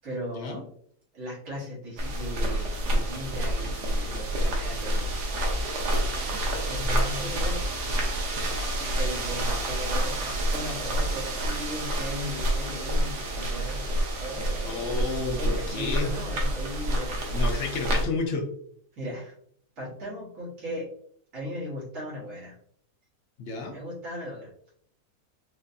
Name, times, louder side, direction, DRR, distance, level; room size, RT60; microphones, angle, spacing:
voice 1, 0.0-0.6 1.1-5.5 6.6-8.2 8.8-13.9 14.2-15.0 15.4-17.2 18.9-19.3 19.8-20.9 21.3-22.6 23.7-24.5, equal, 55° right, -6 dB, 1.7 m, -38 dB
sound 1, 2.0-18.0, right 1 dB, 90° right, 1.4 m, -28 dB
voice 2, 6.7-7.3 14.6-16.1 17.3-18.5 23.4-23.8, left 3 dB, 60° left, 3 dB, 0.8 m, -31 dB
4.5 x 2.4 x 2.6 m, 0.64 s
omnidirectional pair, 1.7 m